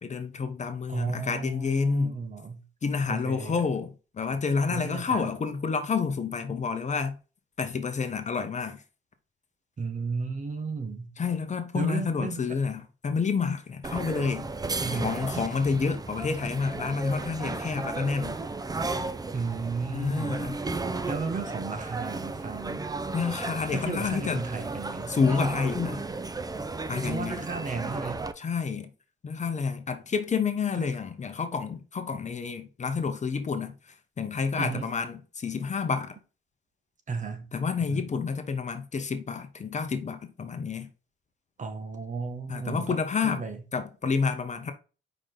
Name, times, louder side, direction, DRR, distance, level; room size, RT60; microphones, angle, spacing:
voice 1, 0.0-2.2 2.8-7.2 7.6-8.8 11.2-14.5 14.9-18.4 19.9-20.6 23.1-24.4 25.1-26.0 26.9-27.4 28.4-28.9 29.2-36.1 37.5-40.9 42.5-43.4 43.7-44.7, left 5 dB, 35° left, 1.0 m, -29 dB
voice 2, 0.9-2.6 3.1-3.6 4.7-5.2 9.8-11.1 11.7-12.6 14.8-15.2 19.3-20.4 21.0-22.9 23.7-25.2 27.1-28.2 30.8-30.9 34.6-34.9 37.1-37.5 37.9-38.0 41.6-43.0 43.2-43.6, right 4 dB, 40° right, 1.4 m, -34 dB
sound 1, 13.8-28.3, right 3 dB, 20° right, 0.6 m, -34 dB
5.1 x 4.9 x 3.9 m
cardioid pair, 90°, 20 cm